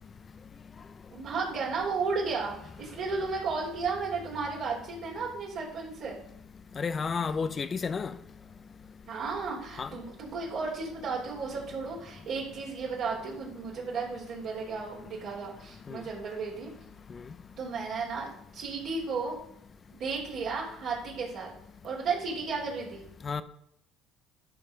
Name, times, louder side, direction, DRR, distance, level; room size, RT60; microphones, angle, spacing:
voice 1, 1.1-6.2 9.1-16.7 17.6-19.4 19.9-21.5 21.8-23.1, right 4 dB, 60° right, 3.4 m, -34 dB
voice 2, 6.7-8.2 9.8-9.9 15.9-16.0 17.1-17.2 23.2-23.4, left 5 dB, 35° left, 0.8 m, -31 dB
11.5 x 5.5 x 5.5 m
hypercardioid pair, 70°, 0 cm